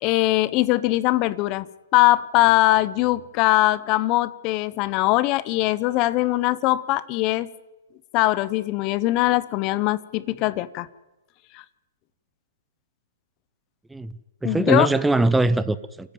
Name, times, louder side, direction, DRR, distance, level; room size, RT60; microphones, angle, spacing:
voice 1, 0.0-1.7 1.9-7.5 8.1-10.9 11.5-11.6 14.4-14.9, left 17 dB, 30° left, 0.8 m, -21 dB
voice 2, 13.9-16.1, right 2 dB, 5° right, 0.6 m, -22 dB
29.0 x 10.0 x 9.2 m
hypercardioid pair, 155°, 0 cm